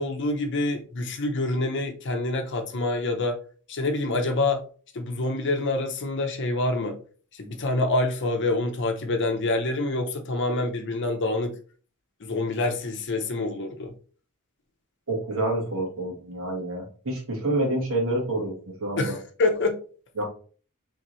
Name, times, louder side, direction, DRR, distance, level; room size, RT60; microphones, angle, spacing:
voice 1, 0.0-3.4 3.7-4.6 4.9-7.0 7.4-11.5 12.2-13.9 19.0-19.8, left 2 dB, 55° left, 0.7 m, -26 dB
voice 2, 15.1-18.5 18.8-19.2 20.2-20.3, right 1 dB, 65° right, 1.6 m, -27 dB
4.0 x 3.5 x 3.1 m
head